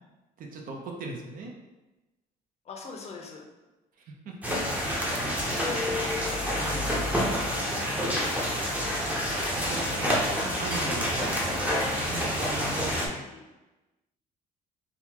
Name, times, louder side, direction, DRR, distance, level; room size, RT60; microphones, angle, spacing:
voice 1, 0.4-1.6 4.1-4.6 5.1-5.3 6.5-7.6 9.5-10.2 10.5-11.2 12.0-13.0, right 3 dB, 55° right, 1 dB, 0.7 m, -39 dB
voice 2, 2.6-3.5 12.5-13.5, left 4 dB, 40° left, 0 dB, 0.6 m, -45 dB
sound 1, 4.4-13.1, equal, 10° right, 0.7 m, -28 dB
3.8 x 2.4 x 2.9 m, 1.1 s
cardioid pair, 110°, 17 cm